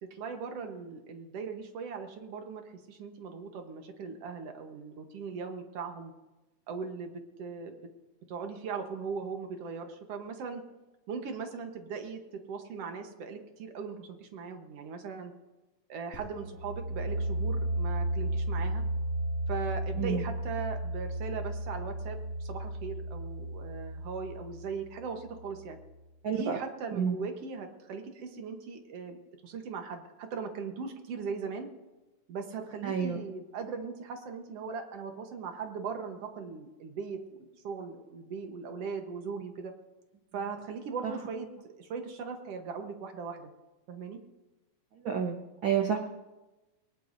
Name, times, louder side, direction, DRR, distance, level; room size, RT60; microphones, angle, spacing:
voice 1, 0.0-6.1 6.7-7.8 8.3-10.6 11.1-15.3 15.9-18.8 19.5-25.8 26.3-31.7 32.3-39.7 40.3-43.5 43.9-44.2, right 5 dB, 60° right, 5 dB, 2.0 m, -39 dB
sound 1, 16.1-25.7, right 1 dB, 55° left, 3.1 m, -34 dB
voice 2, 32.8-33.2 45.0-45.4 45.6-46.0, right 7 dB, 85° right, 3 dB, 1.0 m, -28 dB
21.5 x 19.0 x 2.7 m, 1.1 s
omnidirectional pair, 3.6 m